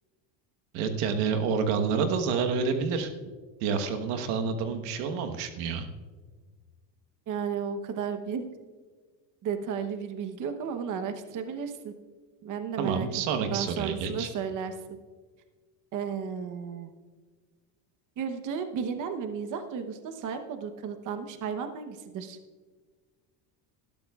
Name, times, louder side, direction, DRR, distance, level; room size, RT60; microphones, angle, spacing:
voice 1, 0.7-3.1 3.6-5.9 12.8-14.3, right 5 dB, 85° right, 6 dB, 1.3 m, -28 dB
voice 2, 7.3-8.4 9.4-11.9 12.4-13.1 13.4-15.0 15.9-16.9 18.2-22.4, right 7 dB, 40° right, 8 dB, 1.0 m, -33 dB
18.5 x 12.0 x 2.4 m, 1.4 s
cardioid pair, 130°, 45 cm